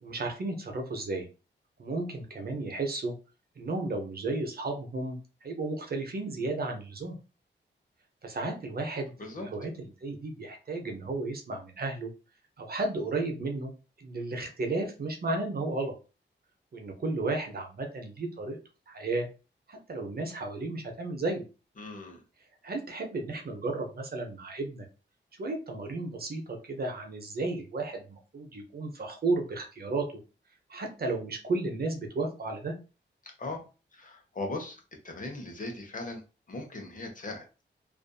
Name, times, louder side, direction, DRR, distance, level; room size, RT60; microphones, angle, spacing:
voice 1, 0.0-1.3 1.8-3.1 3.6-7.2 8.2-9.7 10.0-12.1 12.6-13.7 14.0-15.9 16.7-18.6 18.9-19.3 19.7-21.4 22.6-24.9 25.4-30.2 30.7-32.7, right 2 dB, 50° right, 3 dB, 0.7 m, -33 dB
voice 2, 21.8-22.2 33.2-33.6 33.9-34.8 35.0-36.2 36.5-37.5, left 2 dB, 45° left, 2 dB, 0.8 m, -38 dB
2.5 x 2.5 x 2.2 m, 0.32 s
cardioid pair, 70°, 20 cm